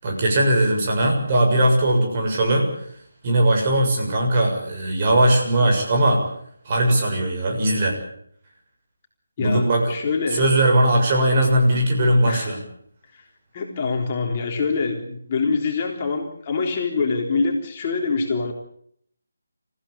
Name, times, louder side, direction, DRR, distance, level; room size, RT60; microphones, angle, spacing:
voice 1, 0.0-2.7 3.2-6.2 6.7-8.0 9.4-10.0 10.3-12.6, right 1 dB, 30° right, 1 dB, 7.0 m, -19 dB
voice 2, 9.4-10.4 12.3-12.5 13.1-13.2 13.5-18.5, left 4 dB, 30° left, 0 dB, 3.7 m, -25 dB
28.5 x 16.0 x 8.6 m, 0.66 s
figure-of-eight pair, 155°, 0 cm